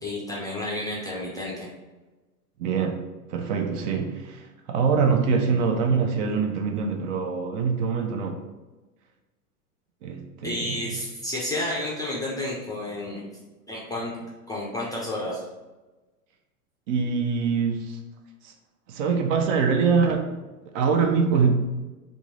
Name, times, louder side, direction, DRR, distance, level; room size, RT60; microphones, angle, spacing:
voice 1, 0.0-1.7 10.4-13.3 13.7-14.1 14.5-15.4, left 1 dB, 10° left, -5 dB, 0.4 m, -31 dB
voice 2, 2.6-3.0 3.3-8.4 10.0-11.0 16.9-18.0 18.4-18.5 18.9-20.4 20.7-21.6, right 5 dB, 50° right, 4 dB, 0.6 m, -24 dB
3.5 x 2.6 x 3.0 m, 1.2 s
hypercardioid pair, 100°, 46 cm